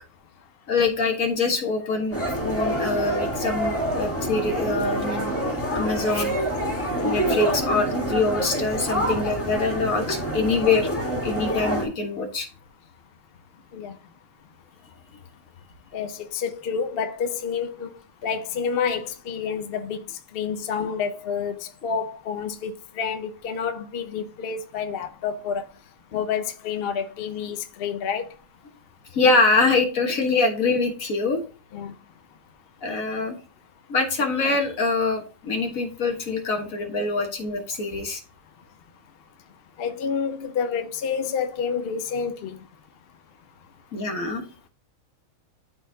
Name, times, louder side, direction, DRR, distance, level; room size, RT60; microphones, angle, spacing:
voice 1, 0.7-5.3 5.7-6.3 7.0-10.9 11.2-12.5 29.1-31.4 32.8-33.4 33.9-38.2 43.9-44.4, left 3 dB, 85° left, 1.8 m, -24 dB
sound 1, 2.1-11.9, equal, 10° left, 1.7 m, -27 dB
voice 2, 15.9-17.9 18.2-25.7 26.1-28.3 31.7-31.9 39.8-42.6, left 6 dB, 50° left, 0.9 m, -29 dB
12.0 x 4.0 x 2.7 m
omnidirectional pair, 1.4 m